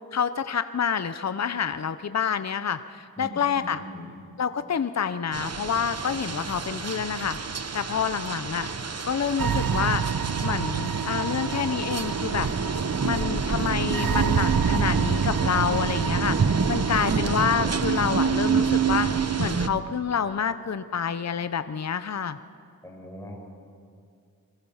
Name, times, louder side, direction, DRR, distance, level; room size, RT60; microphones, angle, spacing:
voice 1, 0.1-3.8 4.4-7.4 7.7-8.7 9.1-10.0 10.4-12.5 13.0-22.4, left 7 dB, 45° left, 11 dB, 0.7 m, -28 dB
voice 2, 3.2-4.1 16.9-17.2 17.6-17.9 22.8-23.4, left 1 dB, 10° left, -1 dB, 7.3 m, -41 dB
sound 1, 5.3-19.7, right 4 dB, 45° right, 1.0 m, -29 dB
sound 2, 9.4-19.4, right 7 dB, 65° right, 0.8 m, -27 dB
29.5 x 22.5 x 5.7 m, 2.3 s
wide cardioid pair, 85°, 37 cm